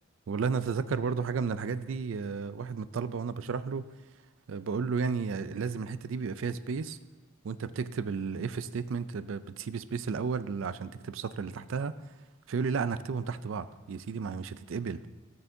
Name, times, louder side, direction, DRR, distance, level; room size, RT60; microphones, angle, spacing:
voice 1, 0.3-3.9 4.5-7.0 7.4-11.9 12.5-15.0, right 5 dB, 70° right, 14 dB, 0.4 m, -33 dB
17.0 x 6.9 x 2.7 m, 1.2 s
head